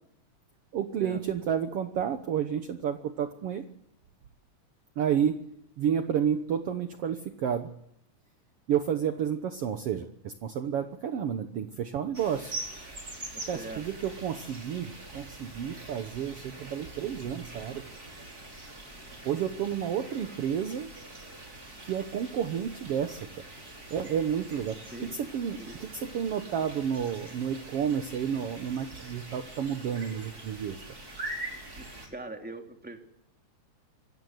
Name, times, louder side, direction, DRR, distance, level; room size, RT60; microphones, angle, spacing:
voice 1, 0.7-3.7 5.0-5.5 5.8-7.7 8.7-12.6 13.5-17.9 19.2-20.9 21.8-23.3 23.9-30.8, right 8 dB, 60° right, 8 dB, 1.9 m, -31 dB
sound 1, 12.1-32.1, right 2 dB, 30° right, 5.3 m, -44 dB
voice 2, 13.3-13.9 24.9-25.1 25.6-25.7 31.8-33.0, right 2 dB, 5° right, 4 dB, 2.7 m, -42 dB
27.0 x 16.0 x 7.9 m, 0.76 s
omnidirectional pair, 3.3 m